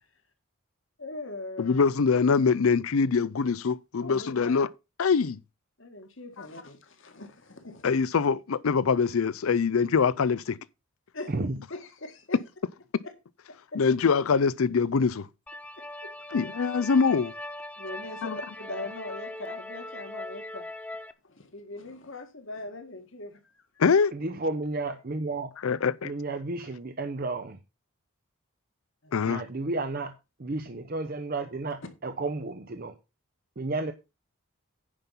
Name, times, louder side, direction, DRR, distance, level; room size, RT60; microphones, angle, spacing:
voice 1, 1.0-1.8 4.0-4.6 5.8-7.9 11.1-11.3 11.7-12.4 13.0-13.1 13.5-13.8 15.8-16.1 17.8-20.7 21.2-23.6 29.0-29.3, left 2 dB, 60° left, 1.7 m, -41 dB
voice 2, 1.6-4.7 5.0-5.4 7.8-10.6 13.8-15.3 16.3-17.3 18.2-18.4 23.8-24.1 25.6-26.1 29.1-29.4, left 5 dB, 80° left, 0.5 m, -24 dB
voice 3, 11.3-11.6 24.1-25.5 26.0-27.6 29.3-30.1 30.4-32.9 33.6-33.9, right 2 dB, 45° right, 0.7 m, -32 dB
sound 1, 15.5-21.1, left 1 dB, 5° left, 0.4 m, -40 dB
9.9 x 5.4 x 5.7 m
head